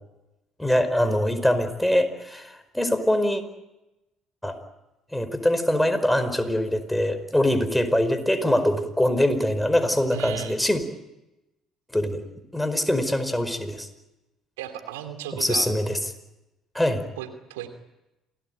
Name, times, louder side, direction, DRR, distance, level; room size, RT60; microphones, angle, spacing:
voice 1, 0.6-3.4 4.4-4.6 5.1-10.8 11.9-12.2 12.5-13.9 15.4-16.0 16.7-17.0, left 1 dB, 5° left, 9 dB, 4.8 m, -23 dB
voice 2, 10.1-10.6 14.6-15.7 17.2-17.7, right 11 dB, 80° right, 8 dB, 2.7 m, -35 dB
28.0 x 18.5 x 9.2 m, 0.95 s
hypercardioid pair, 55°, 0 cm